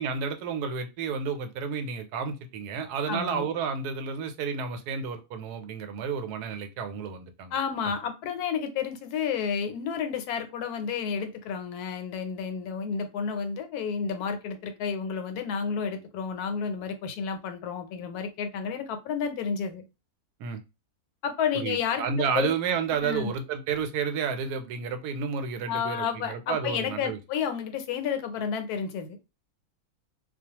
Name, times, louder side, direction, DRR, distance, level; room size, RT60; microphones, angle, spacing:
voice 1, 0.0-7.5 20.4-20.6 21.5-27.2, right 6 dB, 90° right, 8 dB, 1.1 m, -31 dB
voice 2, 3.1-3.5 7.5-19.8 21.2-22.0 22.3-22.5 22.9-23.3 25.7-29.2, left 6 dB, 80° left, 8 dB, 1.1 m, -31 dB
2.3 x 2.3 x 2.8 m, 0.27 s
omnidirectional pair, 1.6 m